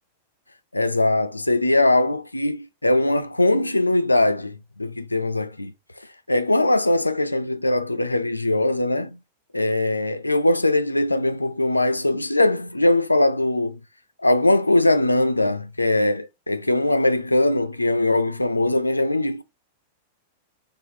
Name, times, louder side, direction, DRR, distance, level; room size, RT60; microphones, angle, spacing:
voice 1, 0.7-5.7 6.3-9.2 9.5-13.8 14.2-19.4, left 2 dB, 85° left, 0.3 m, -21 dB
3.5 x 3.5 x 2.7 m
figure-of-eight pair, 95°, 0 cm